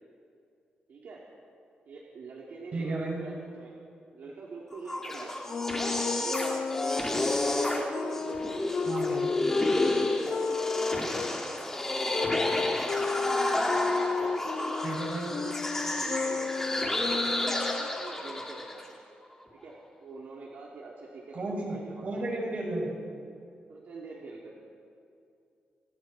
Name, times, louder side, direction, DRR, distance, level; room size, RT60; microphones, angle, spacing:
voice 1, 0.9-1.3 1.9-3.7 4.1-5.4 5.7-7.1 7.6-8.9 10.2-11.3 12.0-12.4 12.9-13.2 13.5-14.9 15.3-15.6 15.9-18.8 19.5-22.1 23.7-24.6, right 4 dB, 65° right, -4 dB, 3.4 m, -45 dB
voice 2, 2.7-3.2 8.8-9.3 14.8-15.3 21.3-23.2, right 2 dB, 45° right, -1 dB, 6.4 m, -33 dB
sound 1, 4.7-18.9, left 1 dB, 15° left, 2.9 m, -31 dB
Wind instrument woodwind instrument, 5.5-11.3 12.1-17.9, left 5 dB, 40° left, 0.6 m, -32 dB
29.5 x 27.0 x 4.5 m, 2.4 s
wide cardioid pair, 175°, 3 cm